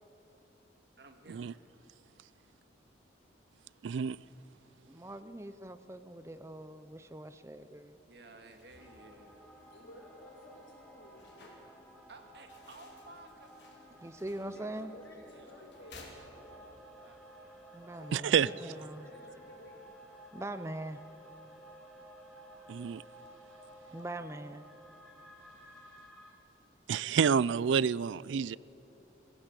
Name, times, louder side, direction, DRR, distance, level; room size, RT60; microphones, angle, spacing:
voice 1, 1.0-1.5 8.1-9.5 12.1-13.5 15.2-17.6, right 2 dB, 60° right, 5 dB, 1.9 m, -56 dB
voice 2, 3.8-4.2 18.1-18.5 22.7-23.0 26.9-28.6, right 7 dB, 80° right, 21 dB, 0.4 m, -28 dB
voice 3, 4.9-8.0 14.0-14.9 17.7-19.1 20.3-21.0 22.3-22.9 23.9-24.6, right 1 dB, 15° right, 11 dB, 0.5 m, -43 dB
sound 1, 8.4-16.9, left 2 dB, 65° left, 3.3 m, -59 dB
sound 2, 8.8-26.3, right 1 dB, 5° left, 3.0 m, -55 dB
voice 4, 9.7-11.4 14.3-16.5 17.9-19.8, left 1 dB, 85° left, -2 dB, 5.8 m, -54 dB
21.0 x 16.0 x 8.2 m, 2.8 s
head